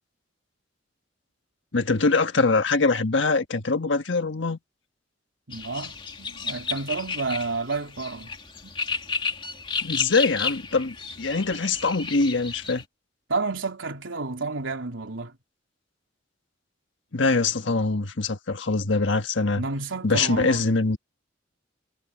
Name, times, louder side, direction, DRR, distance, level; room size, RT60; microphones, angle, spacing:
voice 1, 1.7-4.6 9.8-12.8 17.1-19.6 20.0-21.0, left 3 dB, 70° left, 1.4 m, -23 dB
sound 1, 5.5-12.8, left 5 dB, 25° left, 2.8 m, -33 dB
voice 2, 5.5-8.3 8.6-8.7 13.3-15.4 19.6-20.6, right 3 dB, 85° right, 3.2 m, -30 dB
head